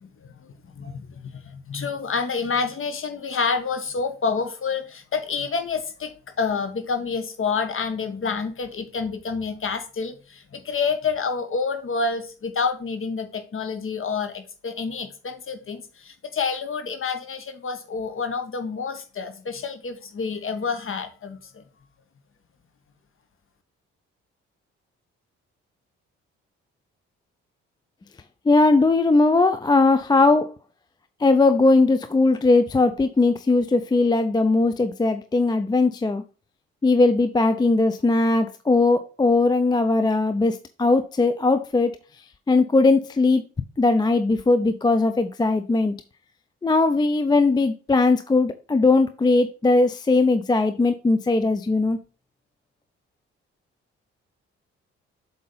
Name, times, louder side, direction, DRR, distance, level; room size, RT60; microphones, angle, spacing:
voice 1, 0.0-21.6, left 5 dB, 35° left, 1.1 m, -28 dB
voice 2, 28.5-30.5 31.2-36.2 36.8-42.0 42.5-43.4 43.8-46.0 46.6-52.0, left 3 dB, 15° left, 0.4 m, -19 dB
7.5 x 2.7 x 5.4 m
figure-of-eight pair, 40°, 34 cm